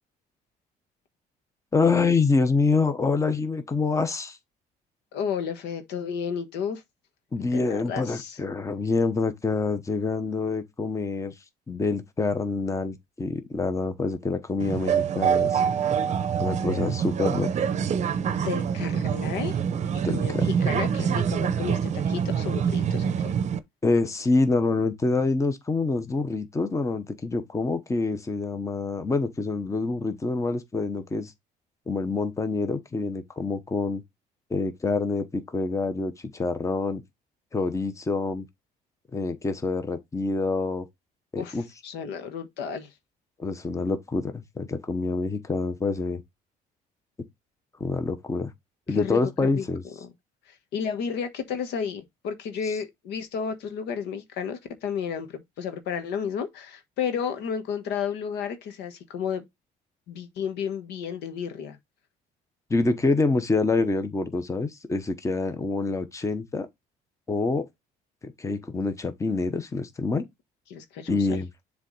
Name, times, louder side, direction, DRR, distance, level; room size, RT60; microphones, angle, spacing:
voice 1, 1.7-4.4 7.3-11.3 11.7-15.6 16.4-17.5 20.0-20.5 23.8-31.3 31.9-34.0 34.5-37.0 37.5-38.5 39.1-40.9 41.3-41.6 43.4-46.2 47.8-48.5 48.9-49.8 62.7-66.7 67.3-67.7 68.2-70.3 71.1-71.5, left 3 dB, 20° left, 1.0 m, -26 dB
voice 2, 5.1-6.8 7.5-8.4 18.3-19.6 20.1-23.3 41.4-42.9 48.9-50.1 50.5-59.4 60.1-61.8 70.7-71.4, left 7 dB, 85° left, 1.4 m, -32 dB
sound 1, 14.6-23.6, right 7 dB, 45° right, 0.7 m, -25 dB
7.3 x 3.5 x 4.0 m
cardioid pair, 110°, 17 cm